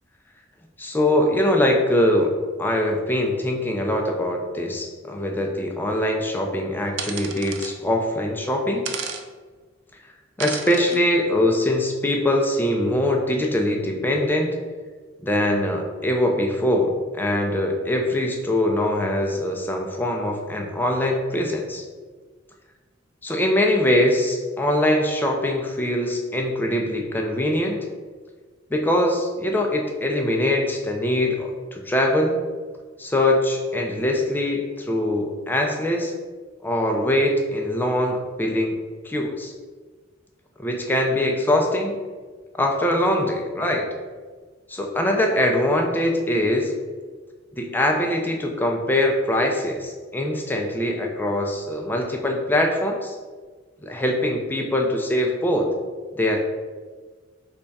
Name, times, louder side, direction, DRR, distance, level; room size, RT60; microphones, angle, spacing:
voice 1, 0.8-2.3 2.6-8.8 10.4-14.6 15.2-21.8 23.2-27.9 28.7-32.4 33.0-36.1 36.6-38.8 39.0-39.5 40.6-42.0 42.5-43.9 44.7-46.7 47.6-53.2 53.8-55.7 56.1-56.4, left 1 dB, 10° left, 2 dB, 0.4 m, -22 dB
sound 1, 7.0-7.7 8.9-9.2 10.4-11.0, right 6 dB, 65° right, 0.4 m, -32 dB
3.3 x 2.3 x 4.0 m, 1.5 s
head